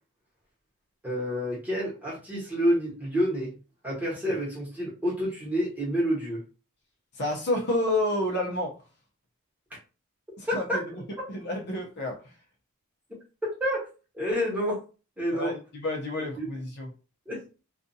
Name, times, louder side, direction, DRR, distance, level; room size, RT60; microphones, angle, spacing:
voice 1, 1.0-3.6 3.8-6.4 10.5-10.8 13.6-13.9 14.1-14.8 15.2-15.5 16.4-16.5 17.3-17.6, equal, 5° right, -6 dB, 1.1 m, -28 dB
voice 2, 7.1-8.8 10.4-11.0 11.3-12.3 15.3-16.9, left 1 dB, 50° left, 0 dB, 0.7 m, -30 dB
2.5 x 2.4 x 2.6 m, 0.33 s
head